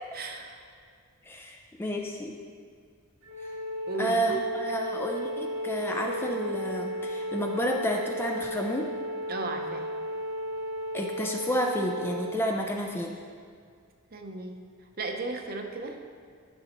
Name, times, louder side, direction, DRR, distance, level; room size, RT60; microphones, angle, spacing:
voice 1, 0.1-0.6 3.9-4.4 9.3-9.9 14.1-14.5 15.0-16.1, right 3 dB, 45° right, 3 dB, 0.7 m, -35 dB
voice 2, 1.3-2.3 4.0-8.9 10.9-13.2, equal, 10° left, 2 dB, 0.4 m, -30 dB
Wind instrument woodwind instrument, 3.2-12.4, equal, 80° right, 1.0 m, -34 dB
11.5 x 5.3 x 3.0 m, 2.1 s
head